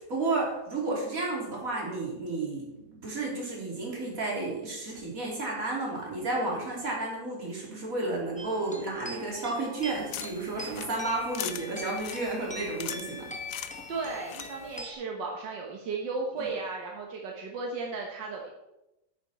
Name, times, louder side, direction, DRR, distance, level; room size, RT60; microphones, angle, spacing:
voice 1, 0.0-13.3 16.4-16.5, right 2 dB, 50° right, -2 dB, 3.5 m, -32 dB
sound 1, 8.4-14.9, left 1 dB, 5° left, 0.8 m, -42 dB
sound 2, 9.8-14.8, left 11 dB, 70° left, 0.8 m, -42 dB
voice 2, 13.9-18.5, right 4 dB, 80° right, 0 dB, 1.8 m, -35 dB
10.5 x 8.7 x 4.1 m, 0.93 s
omnidirectional pair, 1.9 m